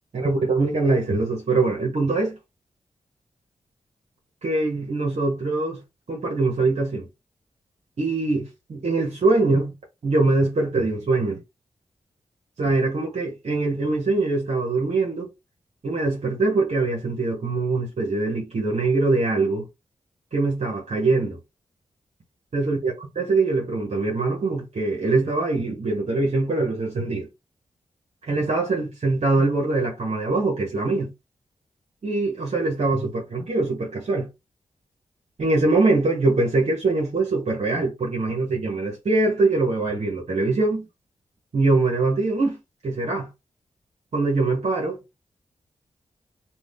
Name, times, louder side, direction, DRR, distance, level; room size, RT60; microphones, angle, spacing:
voice 1, 0.1-2.4 4.4-5.8 6.1-7.1 8.0-9.7 10.0-11.4 12.6-15.3 15.8-19.6 20.3-21.4 22.5-27.3 28.2-31.1 32.0-34.3 35.4-40.9 41.5-42.6 42.8-43.3 44.1-45.1, right 3 dB, 65° right, 1.1 m, -23 dB
2.7 x 2.4 x 3.4 m
cardioid pair, 55°, 12 cm